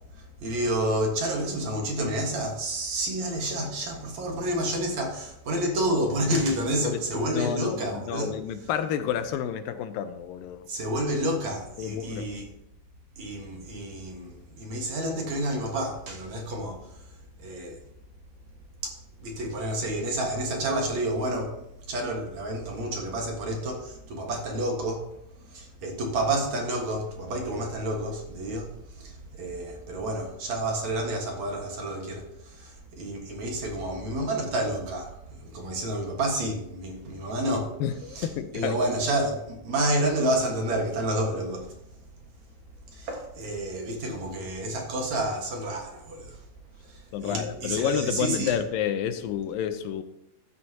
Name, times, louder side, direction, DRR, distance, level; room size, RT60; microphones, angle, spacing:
voice 1, 0.1-8.4 10.7-12.5 13.2-17.0 17.4-17.8 18.8-21.6 21.9-25.1 25.5-37.8 38.1-38.3 38.5-41.8 42.9-46.4 46.8-48.6, right 1 dB, 55° right, 2.6 m, -29 dB
voice 2, 7.3-10.7 11.8-12.3 37.8-38.8 47.1-50.0, left 9 dB, 80° left, 2.4 m, -30 dB
14.5 x 11.0 x 2.9 m
omnidirectional pair, 4.2 m